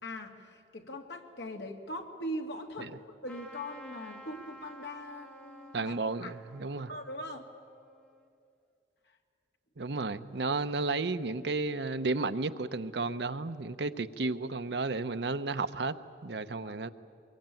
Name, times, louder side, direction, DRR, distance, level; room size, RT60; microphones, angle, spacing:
voice 1, 0.0-2.9 3.2-6.3 6.9-7.5 16.6-16.9, left 1 dB, 70° left, 3 dB, 2.3 m, -41 dB
Trumpet, 3.2-8.3, equal, 5° left, 1.9 m, -52 dB
voice 2, 5.7-6.9 9.8-15.9 16.2-16.9, right 3 dB, 70° right, 11 dB, 0.8 m, -33 dB
23.5 x 22.0 x 9.1 m, 2.5 s
head